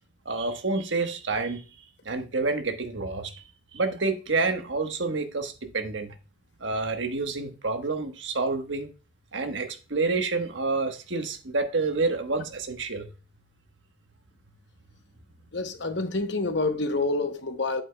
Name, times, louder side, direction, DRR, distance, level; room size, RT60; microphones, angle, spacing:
voice 1, 0.2-1.6 2.0-3.4 3.7-6.1 6.6-8.9 9.3-13.1, right 3 dB, 65° right, 1.3 m, -28 dB
voice 2, 15.5-17.8, left 3 dB, 60° left, 0.9 m, -27 dB
8.7 x 8.2 x 2.3 m
head